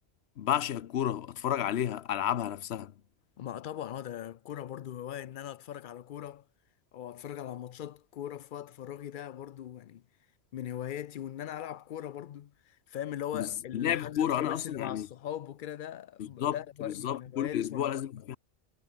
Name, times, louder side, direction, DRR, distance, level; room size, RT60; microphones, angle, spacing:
voice 1, 0.4-2.9 13.3-15.1 16.2-18.4, left 10 dB, 80° left, 1.0 m, -31 dB
voice 2, 3.4-6.5 6.9-10.0 10.5-17.9, left 11 dB, 60° left, 0.6 m, -40 dB
omnidirectional pair, 1.1 m